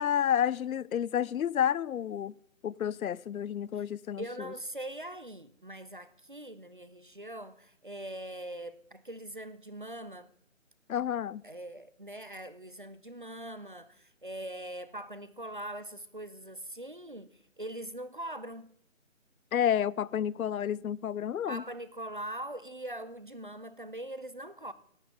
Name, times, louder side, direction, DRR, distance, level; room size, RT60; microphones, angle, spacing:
voice 1, 0.0-2.3 2.6-4.5 10.9-11.4 19.5-21.6, left 9 dB, 85° left, 0.5 m, -30 dB
voice 2, 4.2-10.3 11.4-18.7 21.5-24.7, right 1 dB, 40° right, 0.5 m, -42 dB
15.5 x 11.5 x 3.5 m
hypercardioid pair, 180°, 41 cm